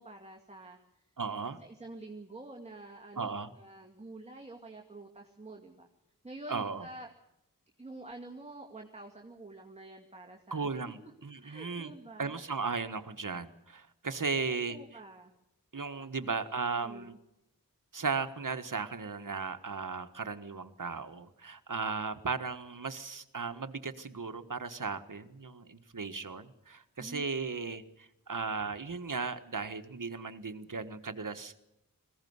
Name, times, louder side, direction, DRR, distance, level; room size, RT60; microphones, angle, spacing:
voice 1, 0.0-1.0 1.4-5.9 6.2-7.1 7.8-10.9 11.4-12.4 14.4-15.3 16.0-16.4 16.7-17.2 27.0-27.2, right 2 dB, 20° right, 2 dB, 2.2 m, -48 dB
voice 2, 1.2-1.6 3.2-3.5 6.5-6.8 10.5-11.9 12.2-14.8 15.7-17.2 17.9-31.5, right 4 dB, 65° right, 9 dB, 1.5 m, -36 dB
21.0 x 16.5 x 9.5 m, 0.87 s
wide cardioid pair, 60°, 35 cm